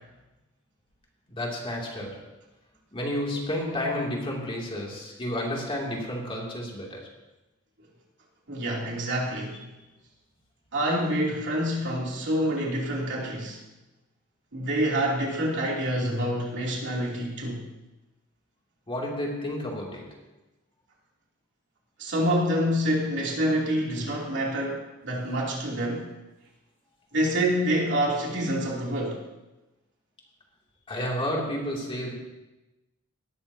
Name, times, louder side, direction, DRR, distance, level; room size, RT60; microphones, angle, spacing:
voice 1, 1.3-2.3 2.9-7.1 18.9-20.2 30.9-32.1, left 1 dB, 25° left, -2 dB, 2.7 m, -31 dB
voice 2, 8.5-9.7 10.7-13.6 14.5-17.6 22.0-26.1 27.1-29.2, equal, 55° right, -3 dB, 3.0 m, -27 dB
18.5 x 13.0 x 2.8 m, 1.0 s
head